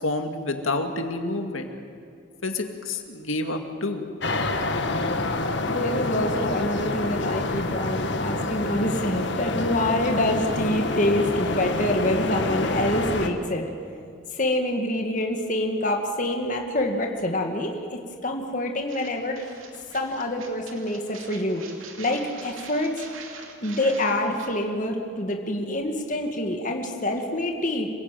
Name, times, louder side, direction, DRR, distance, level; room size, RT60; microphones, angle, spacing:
voice 1, 0.0-1.7 2.4-4.1, left 2 dB, 85° left, 5 dB, 2.2 m, -28 dB
sound 1, 4.2-13.3, left 2 dB, 60° left, 1.5 m, -27 dB
voice 2, 5.7-13.7 14.3-19.6 19.9-21.6 22.0-23.0 23.6-27.9, left 1 dB, 40° left, 3 dB, 2.0 m, -26 dB
sound 2, 18.9-24.5, right 5 dB, 85° right, 2.7 m, -44 dB
26.5 x 16.5 x 9.2 m, 2.3 s
head